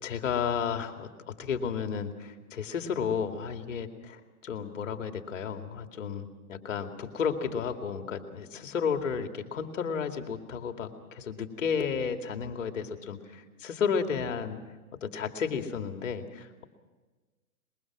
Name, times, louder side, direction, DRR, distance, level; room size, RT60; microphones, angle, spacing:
voice 1, 0.0-14.6 15.0-16.6, left 6 dB, 55° left, 5 dB, 2.5 m, -32 dB
23.5 x 22.0 x 6.1 m, 1.3 s
hypercardioid pair, 165°, 44 cm